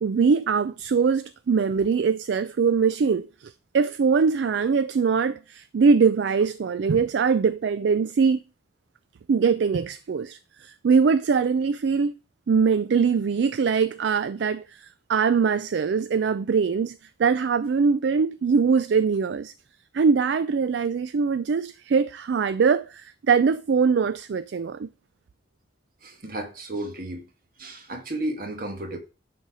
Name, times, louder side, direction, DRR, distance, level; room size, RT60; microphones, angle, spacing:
voice 1, 0.0-8.4 9.3-12.1 12.5-19.5 19.9-24.9, right 5 dB, 70° right, 0.4 m, -22 dB
voice 2, 26.0-27.3 27.6-29.0, right 1 dB, 50° right, 1.4 m, -33 dB
10.5 x 4.0 x 4.8 m
head